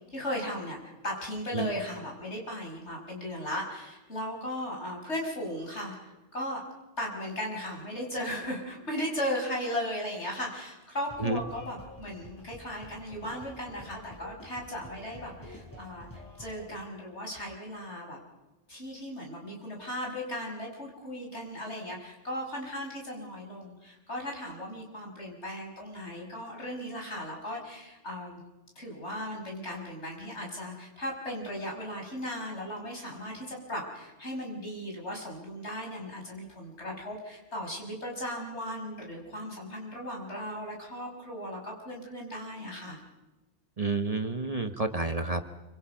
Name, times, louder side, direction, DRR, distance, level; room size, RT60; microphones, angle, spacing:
voice 1, 0.1-6.6 7.0-18.2 18.7-28.4 28.8-43.0, equal, 70° left, 0 dB, 6.2 m, -37 dB
sound 1, 11.1-16.8, equal, 15° left, 6.7 m, -49 dB
voice 2, 43.8-45.5, right 3 dB, 35° right, 7 dB, 1.2 m, -29 dB
26.5 x 25.5 x 5.8 m, 1.1 s
omnidirectional pair, 1.2 m